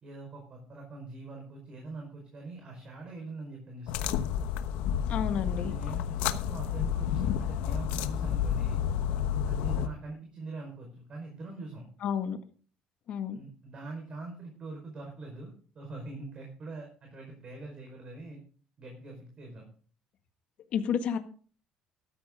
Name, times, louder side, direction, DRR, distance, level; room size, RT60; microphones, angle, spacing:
voice 1, 0.0-4.1 5.5-8.8 9.5-11.9 13.3-18.4 18.8-19.6, right 2 dB, 40° right, 2 dB, 4.8 m, -43 dB
sound 1, 3.9-9.9, left 9 dB, 90° left, 1.1 m, -30 dB
voice 2, 5.1-5.7 12.0-12.4 13.1-13.4 20.7-21.2, left 8 dB, 55° left, 7 dB, 1.8 m, -30 dB
13.5 x 13.0 x 3.8 m, 0.43 s
cardioid pair, 125°, 2 cm